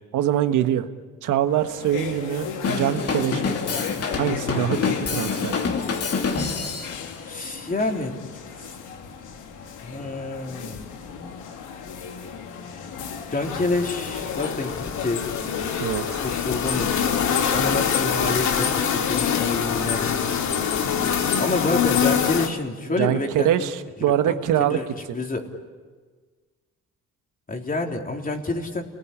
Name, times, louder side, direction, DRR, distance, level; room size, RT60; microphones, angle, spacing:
voice 1, 0.1-0.9 1.2-3.6 4.2-5.5 15.8-16.2 23.0-24.8 25.1-25.2, right 11 dB, 85° right, 9 dB, 1.5 m, -24 dB
sound 1, 1.5-20.0, left 7 dB, 90° left, 2.5 m, -35 dB
Drum kit / Drum, 2.6-7.0, left 5 dB, 50° left, 2.8 m, -27 dB
voice 2, 7.3-8.2 8.5-8.8 9.4-9.6 9.8-10.9 13.3-15.2 16.2-20.2 21.4-23.7 24.3-24.9 25.1-25.5 27.5-28.8, left 2 dB, 30° left, 2 dB, 3.6 m, -28 dB
sound 2, 13.4-22.5, left 7 dB, 70° left, 2.3 m, -24 dB
29.5 x 19.5 x 9.9 m, 1.5 s
cardioid pair, 90°, 30 cm